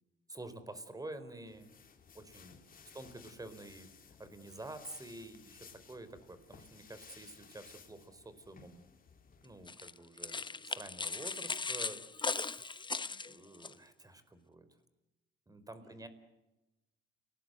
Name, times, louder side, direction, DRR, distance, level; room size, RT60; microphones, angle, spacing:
voice 1, 0.3-1.7 2.1-2.6 2.9-3.9 4.2-8.8 9.4-12.8 13.2-14.7 15.5-16.1, right 2 dB, 20° right, 12 dB, 4.3 m, -49 dB
sound 1, 1.5-9.7, left 6 dB, 45° left, 3.5 m, -58 dB
voice 2, 2.7-3.1 13.0-13.4 15.7-16.1, right 1 dB, 80° right, 10 dB, 4.8 m, -68 dB
sound 2, 9.7-13.7, left 4 dB, 25° left, 1.0 m, -38 dB
30.0 x 19.0 x 8.1 m, 1.0 s
cardioid pair, 90°, 20 cm